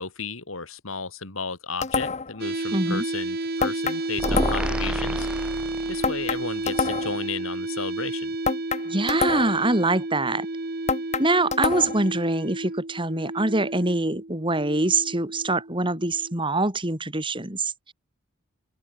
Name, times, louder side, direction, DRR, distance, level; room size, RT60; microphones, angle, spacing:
voice 1, 0.0-5.3 5.9-8.3, left 4 dB, 85° left, 3.2 m, -34 dB
sound 1, 1.8-2.4 3.6-4.8 6.0-7.2 8.4-9.7 10.9-12.1, left 4 dB, 35° left, 0.8 m, -27 dB
sound 2, 2.4-16.4, right 2 dB, 50° right, 1.8 m, -32 dB
voice 2, 2.7-3.0 8.9-10.5 11.2-17.9, right 2 dB, 25° right, 3.4 m, -24 dB
sound 3, 4.2-6.3, equal, 5° right, 0.9 m, -29 dB
open air
head